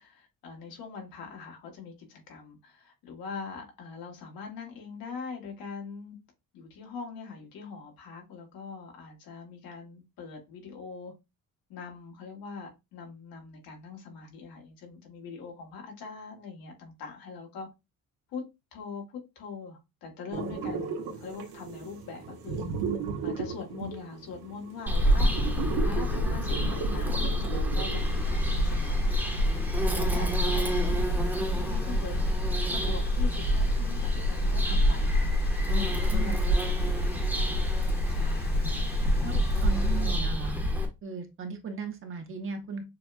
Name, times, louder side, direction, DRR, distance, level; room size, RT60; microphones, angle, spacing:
voice 1, 0.0-6.2 6.5-11.1 11.7-17.7 18.3-18.4 18.7-22.7 23.2-25.3 25.8-29.2 29.7-32.2 32.7-35.4 35.7-37.0 37.3-37.8 38.1-38.7, left 5 dB, 75° left, 2.0 m, -42 dB
sound 1, 20.3-28.7, right 5 dB, 90° right, 1.2 m, -36 dB
Bird vocalization bird call bird song, 24.9-40.9, equal, 5° right, 1.0 m, -26 dB
sound 2, 27.9-40.1, left 4 dB, 30° left, 0.7 m, -47 dB
voice 2, 39.2-40.6 41.0-42.8, right 4 dB, 35° right, 1.0 m, -37 dB
6.7 x 2.4 x 2.5 m
cardioid pair, 145°, 35 cm